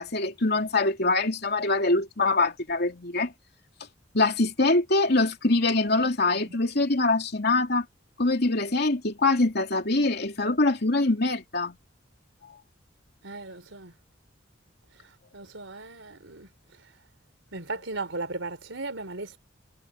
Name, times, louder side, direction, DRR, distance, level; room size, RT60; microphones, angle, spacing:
voice 1, 0.0-3.3 4.1-7.8 8.2-11.8, left 2 dB, 60° left, 3.1 m, -24 dB
voice 2, 13.2-13.9 15.0-16.5 16.8-16.9 17.5-19.4, right 3 dB, 85° right, 3.8 m, -37 dB
head